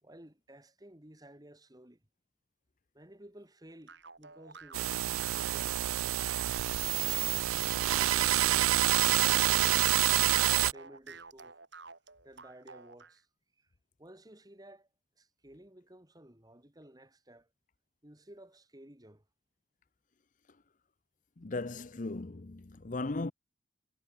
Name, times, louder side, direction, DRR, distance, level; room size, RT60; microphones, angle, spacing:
voice 1, 0.0-2.0 2.9-6.0 10.0-11.6 12.2-13.3 13.6-13.7 14.0-14.9 15.2-17.5 18.0-19.2, right 1 dB, 20° right, 2.0 m, -55 dB
sound 1, 3.9-13.2, right 4 dB, 60° right, 3.7 m, -51 dB
sound 2, 4.7-10.7, right 14 dB, 90° right, 0.3 m, -27 dB
voice 2, 21.4-23.3, left 2 dB, 40° left, 0.7 m, -37 dB
head